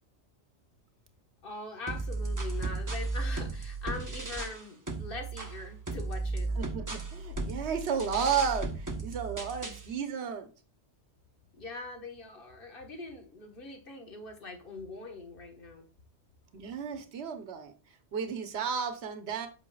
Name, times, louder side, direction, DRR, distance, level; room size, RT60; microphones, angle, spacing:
voice 1, 1.4-6.5 11.5-15.9, left 3 dB, 50° left, 2 dB, 1.5 m, -42 dB
sound 1, 1.9-4.6 4.9-9.9, right 3 dB, 20° right, 0.8 m, -35 dB
voice 2, 6.6-10.5 16.5-17.7 18.1-19.5, right 7 dB, 70° right, 7 dB, 1.1 m, -33 dB
8.3 x 5.6 x 2.3 m, 0.34 s
omnidirectional pair, 1.2 m